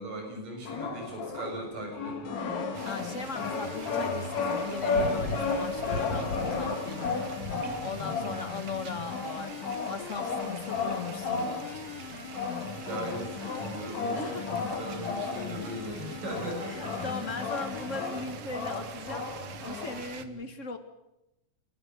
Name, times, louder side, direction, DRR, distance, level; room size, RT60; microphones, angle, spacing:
voice 1, 0.0-2.9 8.0-8.4 12.8-17.4 20.2-20.5, right 1 dB, 85° right, 1 dB, 8.6 m, -39 dB
sound 1, 0.6-20.0, left 4 dB, 60° left, 3.7 m, -34 dB
sound 2, 2.2-18.2, left 10 dB, 85° left, 2.9 m, -42 dB
sound 3, 2.7-20.2, right 7 dB, 55° right, 1.9 m, -45 dB
voice 2, 2.8-4.3 4.6-7.1 7.8-11.8 14.1-14.5 16.6-20.8, left 4 dB, 35° left, 8 dB, 1.3 m, -38 dB
29.0 x 12.5 x 9.1 m, 0.90 s
omnidirectional pair, 3.7 m